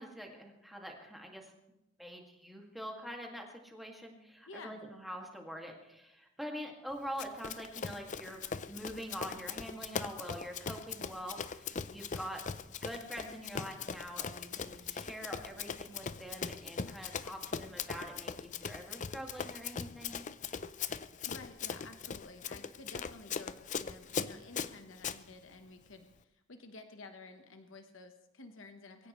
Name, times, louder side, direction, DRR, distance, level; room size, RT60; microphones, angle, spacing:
voice 1, 0.0-1.5 2.0-12.5 12.8-20.2, equal, ahead, 1 dB, 2.1 m, -45 dB
voice 2, 4.5-4.8 21.2-29.1, left 3 dB, 65° left, 7 dB, 1.1 m, -52 dB
Run, 7.2-25.2, left 6 dB, 35° left, 0.5 m, -40 dB
23.0 x 16.0 x 3.2 m, 0.91 s
head